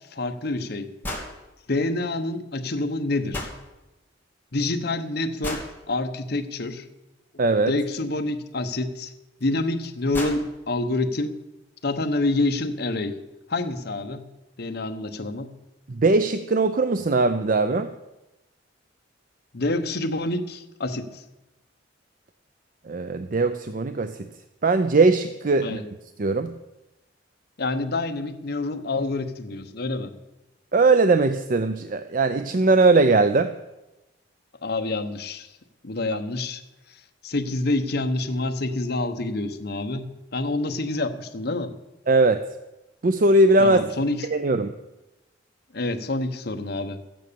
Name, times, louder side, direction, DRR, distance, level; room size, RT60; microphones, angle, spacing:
voice 1, 0.1-0.9 1.7-3.5 4.5-6.9 7.7-9.1 9.4-11.4 11.8-13.2 13.5-14.3 14.6-15.5 19.5-21.2 25.6-25.8 27.6-30.1 34.6-35.5 35.8-36.6 36.9-41.7 43.6-44.3 45.7-47.0, left 2 dB, 55° left, 7 dB, 1.0 m, -27 dB
sound 1, 1.0-1.3 3.3-3.6 5.4-5.7 8.0-8.1 9.4-9.5 9.8-9.9 10.1-10.4, left 1 dB, 10° left, 2.4 m, -32 dB
voice 2, 7.4-7.7 15.9-17.9 22.9-24.2 24.6-25.8 26.2-26.5 30.7-33.5 42.1-42.4 43.0-43.9 44.3-44.7, right 3 dB, 45° right, 10 dB, 0.5 m, -20 dB
13.5 x 9.3 x 6.9 m, 1.0 s
head